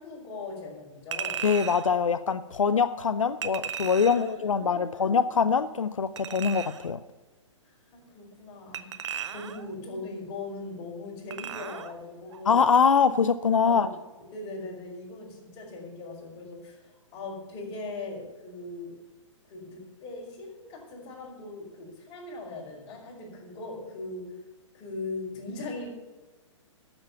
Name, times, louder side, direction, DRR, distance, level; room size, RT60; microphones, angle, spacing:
voice 1, 0.0-1.5 4.0-5.3 7.6-12.6 13.6-13.9 14.3-19.0 19.5-24.3 24.7-25.9, left 3 dB, 30° left, -2 dB, 4.8 m, -40 dB
Chink clink, 1.1-1.9 3.4-4.3 6.2-6.9 8.7-9.7 11.3-11.9 12.3-12.4, right 8 dB, 65° right, 0.9 m, -36 dB
voice 2, 1.4-7.0 12.5-13.9, left 6 dB, 80° left, 12 dB, 0.5 m, -23 dB
12.5 x 7.1 x 6.9 m, 1.2 s
figure-of-eight pair, 120°, 16 cm